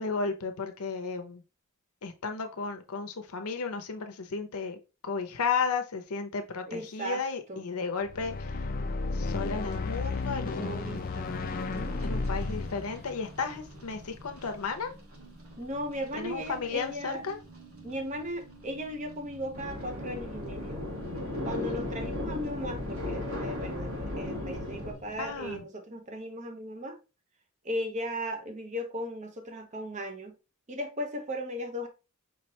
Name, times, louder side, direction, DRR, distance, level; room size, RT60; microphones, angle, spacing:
voice 1, 0.0-1.4 2.0-8.6 9.1-11.1 12.0-14.9 16.1-17.4 21.5-21.8 25.2-25.6, left 5 dB, 80° left, 0.7 m, -34 dB
voice 2, 6.7-7.2 7.5-7.6 10.6-12.0 15.6-17.2 17.8-20.8 21.4-27.0 27.6-30.3 30.7-31.9, equal, 35° right, 0.8 m, -37 dB
sound 1, 8.0-14.4, left 3 dB, 40° left, 0.4 m, -33 dB
sound 2, 9.0-25.6, right 2 dB, 75° right, 1.4 m, -50 dB
sound 3, 19.5-24.9, left 1 dB, 60° right, 1.5 m, -35 dB
5.0 x 3.2 x 2.8 m
head